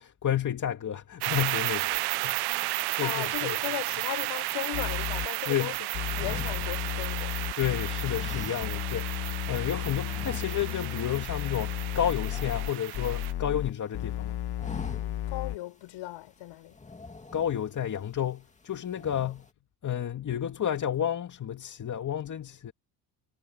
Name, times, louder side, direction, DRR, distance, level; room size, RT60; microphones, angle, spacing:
voice 1, 0.0-2.4 2.9-3.5 5.4-5.8 7.5-14.3 17.3-19.4 19.8-22.7, left 10 dB, 40° left, 2.5 m, -31 dB
sound 1, 1.2-13.3, right 21 dB, 60° right, 0.5 m, -33 dB
voice 2, 3.0-5.8 6.1-7.4 8.5-8.8 15.3-16.8 19.2-19.3, left 17 dB, 75° left, 5.7 m, -37 dB
sound 2, 4.7-5.3 5.9-15.6, left 13 dB, 55° left, 1.5 m, -33 dB
sound 3, 6.1-7.6 8.1-9.2 9.5-9.7 10.1-11.0 11.2-11.5 11.7-13.5 13.9-14.2 14.5-15.4 15.8-15.9 16.7-17.8 18.3-18.6 18.9-19.5, left 3 dB, 15° left, 2.2 m, -44 dB
cardioid pair, 105°, 45 cm